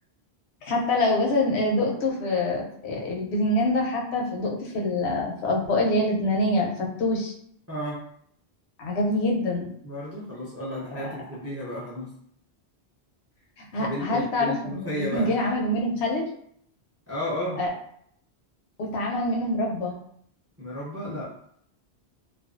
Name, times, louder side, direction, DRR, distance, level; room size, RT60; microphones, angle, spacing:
voice 1, 0.6-7.3 8.8-9.7 13.6-16.3 17.6-17.7 18.8-20.0, left 1 dB, 75° left, 0 dB, 0.8 m, -25 dB
voice 2, 7.7-8.0 9.8-12.1 13.8-15.4 17.1-17.6 20.6-21.2, equal, 20° right, -6 dB, 0.4 m, -33 dB
2.4 x 2.2 x 2.4 m, 0.68 s
omnidirectional pair, 1.1 m